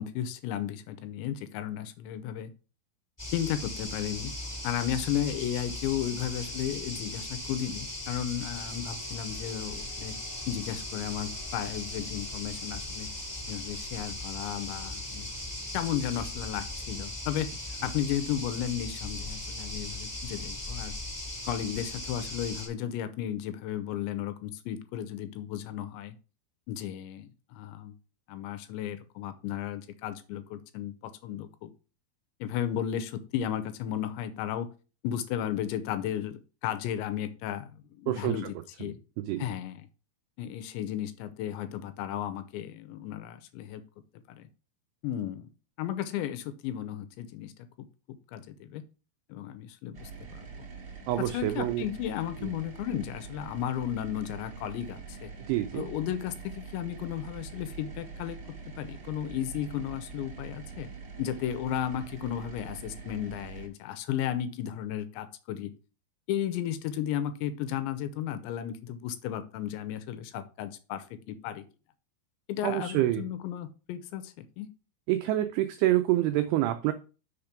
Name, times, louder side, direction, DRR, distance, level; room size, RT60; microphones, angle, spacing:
voice 1, 0.0-2.5 3.3-4.3 4.6-10.1 10.5-13.1 13.5-15.3 15.7-17.5 17.8-21.0 21.5-26.2 26.7-27.9 28.3-31.7 32.4-34.7 35.0-37.7 38.0-39.0 39.4-39.9 40.4-43.8 44.3-44.5 45.0-45.5 45.8-47.5 47.8-48.8 49.3-50.7 51.2-55.3 55.7-58.4 58.8-60.9 61.2-65.7 66.3-71.6 72.5-74.7, left 10 dB, 85° left, 10 dB, 2.9 m, -34 dB
sound 1, 3.2-22.7, left 1 dB, 5° left, 3.3 m, -38 dB
sound 2, 49.9-63.7, right 5 dB, 25° right, 3.4 m, -44 dB
voice 2, 51.1-51.8 52.4-52.5 55.5-55.9 72.6-73.2 75.1-76.9, right 14 dB, 90° right, 8 dB, 2.3 m, -27 dB
6.6 x 5.1 x 5.8 m, 0.34 s
omnidirectional pair, 5.4 m